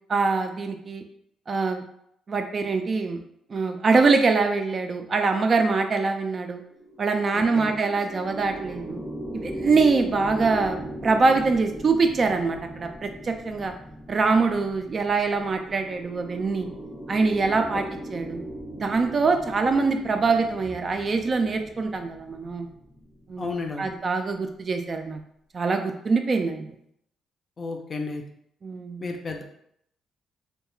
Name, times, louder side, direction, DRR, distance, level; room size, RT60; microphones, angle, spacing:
voice 1, 0.1-1.1 1.5-1.8 2.3-3.2 3.5-6.6 7.0-9.0 9.3-10.8 11.0-13.7 14.1-16.7 17.1-18.4 18.8-22.7 23.3-23.5 23.8-25.2 25.5-26.7 28.6-29.0, right 4 dB, 40° right, 5 dB, 0.3 m, -24 dB
sound 1, 6.6-24.1, right 1 dB, 5° left, 0.6 m, -38 dB
voice 2, 7.3-7.7 23.4-23.9 27.6-28.2 29.0-29.4, left 3 dB, 40° left, 3 dB, 0.4 m, -32 dB
2.3 x 2.2 x 3.0 m, 0.72 s
cardioid pair, 90°, 0 cm